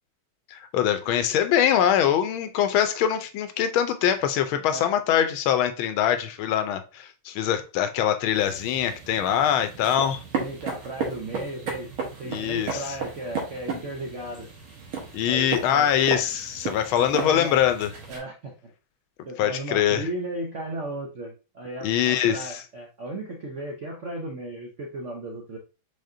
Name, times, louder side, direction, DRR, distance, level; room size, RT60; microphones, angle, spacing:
voice 1, 0.5-10.2 12.2-12.8 15.1-17.9 19.4-20.1 21.8-22.6, left 10 dB, 80° left, 1.5 m, -23 dB
sound 1, 8.3-18.2, right 5 dB, 90° right, 2.1 m, -35 dB
voice 2, 10.4-11.9 12.2-14.5 15.2-15.9 17.0-17.6 18.1-18.7 19.3-25.6, right 1 dB, 65° right, 0.7 m, -35 dB
5.0 x 3.8 x 2.7 m
omnidirectional pair, 2.2 m